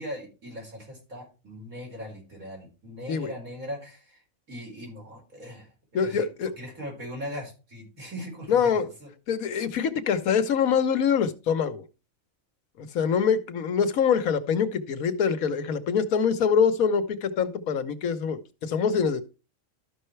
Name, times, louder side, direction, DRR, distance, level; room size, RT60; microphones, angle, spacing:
voice 1, 0.0-4.2 4.5-6.3 6.6-9.1, equal, 90° right, 4.9 m, -39 dB
voice 2, 5.9-6.5 8.5-8.9 9.3-11.8 12.8-19.2, left 6 dB, 90° left, 1.4 m, -24 dB
13.0 x 5.6 x 3.1 m
omnidirectional pair, 1.4 m